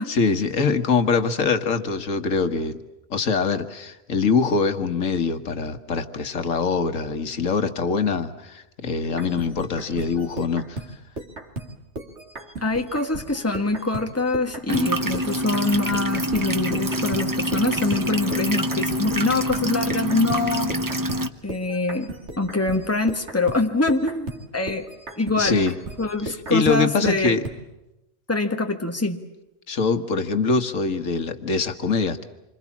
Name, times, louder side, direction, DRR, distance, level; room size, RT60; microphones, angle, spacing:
voice 1, 0.1-2.8 3.1-10.8 25.4-25.8 26.2-27.4 29.7-32.2, left 4 dB, 85° left, 9 dB, 1.8 m, -23 dB
sound 1, 9.1-14.9 15.1-27.6, right 2 dB, 60° right, 2.8 m, -37 dB
voice 2, 12.6-20.7 21.4-24.9 25.2-25.6 26.0-27.4 28.3-29.2, left 2 dB, 10° left, 5 dB, 1.6 m, -24 dB
sound 2, 14.7-21.3, equal, 15° right, 1.0 m, -26 dB
27.5 x 25.5 x 7.3 m, 0.94 s
omnidirectional pair, 1.3 m